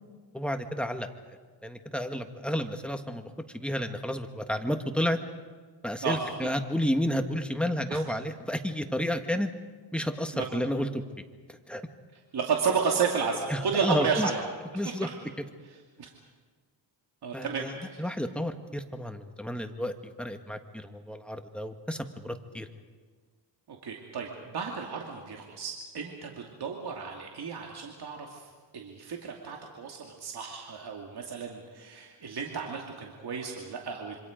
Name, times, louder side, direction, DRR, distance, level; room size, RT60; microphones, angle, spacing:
voice 1, 0.3-1.1 1.6-5.2 5.8-9.5 9.9-11.0 11.5-11.8 13.5-14.3 14.7-15.1 17.3-22.7, equal, ahead, 6 dB, 1.5 m, -31 dB
voice 2, 12.3-14.4 14.8-15.1 16.0-16.1 17.2-18.0 23.7-28.4 28.7-34.2, right 5 dB, 60° right, 0 dB, 2.5 m, -32 dB
27.0 x 25.0 x 5.2 m, 1.5 s
cardioid pair, 105°, 44 cm